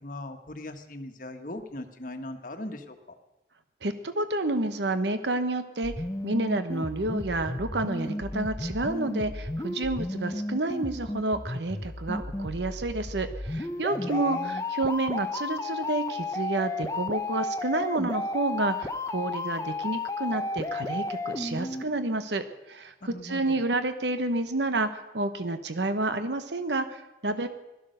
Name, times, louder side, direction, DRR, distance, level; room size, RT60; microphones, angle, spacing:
voice 1, 0.0-3.2 14.0-14.6 23.1-23.7, left 1 dB, 50° left, 6 dB, 1.4 m, -39 dB
voice 2, 3.8-5.9 6.2-27.5, right 2 dB, 75° right, 10 dB, 1.0 m, -29 dB
sound 1, 5.8-21.8, left 2 dB, 15° left, 0.7 m, -33 dB
17.0 x 13.0 x 6.5 m, 1.0 s
head